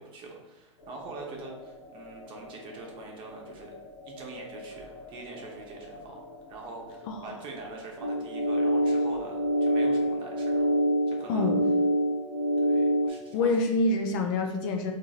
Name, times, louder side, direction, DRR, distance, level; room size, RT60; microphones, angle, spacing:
voice 1, 0.0-3.7 4.1-10.7 11.1-11.5 12.6-13.5, right 3 dB, 30° right, 0 dB, 0.8 m, -44 dB
sound 1, 0.8-10.8, left 1 dB, 65° left, 0.9 m, -46 dB
sound 2, 8.0-13.1, equal, 75° right, 0.6 m, -25 dB
voice 2, 11.3-11.6 13.3-14.9, left 2 dB, 45° left, 3 dB, 0.5 m, -26 dB
3.7 x 2.6 x 2.4 m, 1.0 s
hypercardioid pair, 105°, 16 cm